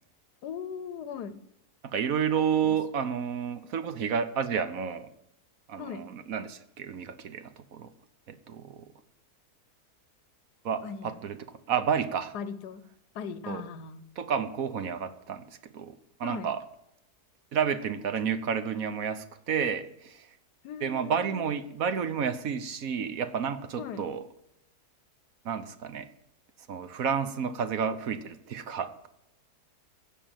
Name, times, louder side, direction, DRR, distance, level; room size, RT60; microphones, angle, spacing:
voice 1, 0.4-1.4 2.7-2.8 5.8-6.1 10.8-11.2 12.3-12.8 13.1-14.0 16.2-16.5 20.6-21.5 23.8-24.1, left 6 dB, 90° left, 14 dB, 1.5 m, -39 dB
voice 2, 1.8-5.1 5.7-7.9 8.3-8.9 10.6-11.4 11.7-12.3 13.5-13.6 14.2-15.4 15.7-16.6 17.5-20.3 20.8-24.2 25.4-26.1 26.7-29.1, right 7 dB, 65° right, 11 dB, 1.3 m, -30 dB
15.5 x 5.5 x 9.0 m, 0.83 s
omnidirectional pair, 1.7 m